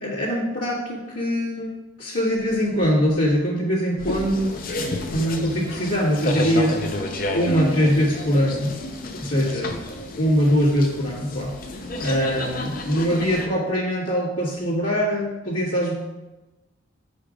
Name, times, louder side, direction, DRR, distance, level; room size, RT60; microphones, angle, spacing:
voice 1, 0.0-1.7 2.0-7.0 7.3-8.7 9.2-9.7 10.2-11.5 12.0-15.9, equal, 90° left, -10 dB, 1.5 m, -22 dB
sound 1, 4.0-13.5, left 1 dB, 45° left, 0.6 m, -30 dB
5.1 x 5.0 x 4.8 m, 1.0 s
head